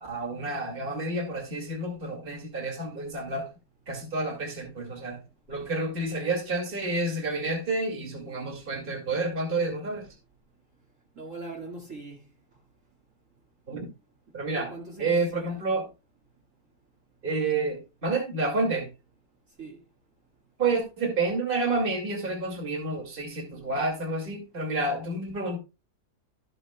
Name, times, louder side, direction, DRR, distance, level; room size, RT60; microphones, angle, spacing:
voice 1, 0.0-3.5 3.9-5.2 5.5-10.1 13.7-13.9 14.3-14.7 15.0-15.9 17.2-18.9 20.6-25.6, right 3 dB, 30° right, 2.4 m, -29 dB
voice 2, 11.2-12.3 14.5-15.6 19.6-19.8, right 3 dB, 50° right, 2.3 m, -41 dB
13.0 x 7.9 x 2.2 m
omnidirectional pair, 1.8 m